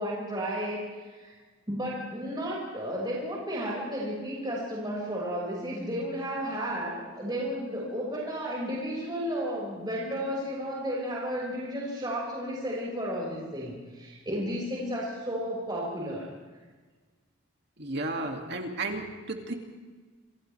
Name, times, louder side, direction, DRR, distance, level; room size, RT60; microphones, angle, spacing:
voice 1, 0.0-1.3 1.7-16.3, equal, 20° right, -5 dB, 5.9 m, -33 dB
voice 2, 17.8-19.5, right 2 dB, 55° right, 2 dB, 2.5 m, -33 dB
28.5 x 27.5 x 3.5 m, 1.4 s
head